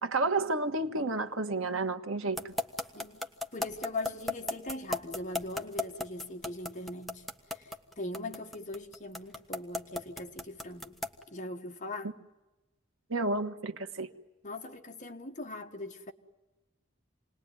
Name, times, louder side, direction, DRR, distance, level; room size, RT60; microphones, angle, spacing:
voice 1, 0.0-2.5 13.1-14.1, right 2 dB, 85° right, 1.4 m, -31 dB
sound 1, 2.4-11.2, left 2 dB, ahead, 1.4 m, -34 dB
voice 2, 2.9-11.0 11.3-12.2 14.4-16.1, left 2 dB, 40° left, 1.7 m, -41 dB
28.5 x 20.0 x 9.4 m
head